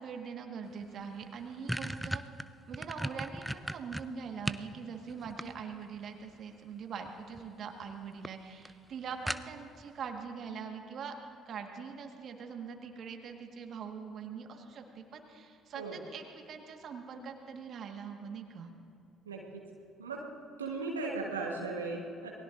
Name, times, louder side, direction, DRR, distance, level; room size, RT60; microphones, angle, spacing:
voice 1, 0.0-2.2 2.7-11.2 11.4-18.7, right 6 dB, 50° right, 4 dB, 1.5 m, -43 dB
sound 1, 0.8-0.9 1.2-4.7 5.1-6.0 7.1-7.5 7.8-7.9 8.2-8.3 8.6-8.7 9.3-9.8, right 1 dB, 5° right, 0.6 m, -37 dB
voice 2, 19.3-19.6 20.0-20.2 20.6-22.3, right 3 dB, 90° right, -1 dB, 1.3 m, -37 dB
28.0 x 20.0 x 2.6 m, 2.5 s
figure-of-eight pair, 50°, 0 cm